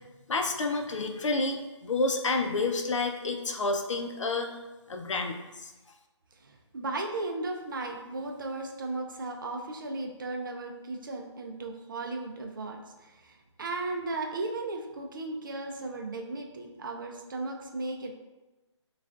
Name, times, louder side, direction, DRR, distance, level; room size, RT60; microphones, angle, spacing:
voice 1, 0.3-4.5 4.9-5.7, left 3 dB, 80° left, 4 dB, 0.6 m, -29 dB
voice 2, 6.4-18.1, right 2 dB, 45° right, 3 dB, 0.5 m, -36 dB
6.8 x 2.4 x 2.4 m, 1.1 s
hypercardioid pair, 165°, 16 cm